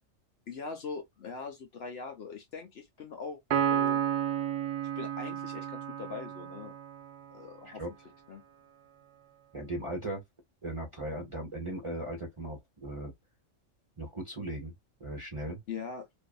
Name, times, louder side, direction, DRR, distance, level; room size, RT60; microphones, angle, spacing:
voice 1, 0.5-4.1 5.0-6.7 7.3-7.8 8.3-8.4 15.7-16.1, left 5 dB, 60° left, 0.8 m, -41 dB
Piano, 3.5-7.1, right 9 dB, 70° right, 0.9 m, -31 dB
voice 2, 9.5-10.2 10.6-13.1 14.0-14.7 15.0-15.6, right 1 dB, 30° right, 0.6 m, -37 dB
2.6 x 2.4 x 2.2 m
omnidirectional pair, 1.3 m